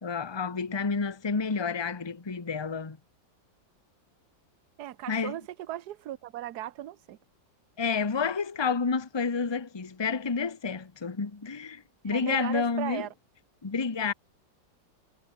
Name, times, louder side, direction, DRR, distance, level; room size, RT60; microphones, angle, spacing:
voice 1, 0.0-3.0 5.1-5.4 7.8-13.1 13.6-14.1, left 5 dB, 20° left, 0.9 m, -30 dB
voice 2, 4.8-7.2 12.0-13.1, right 13 dB, 60° right, 1.4 m, -37 dB
omnidirectional pair, 2.0 m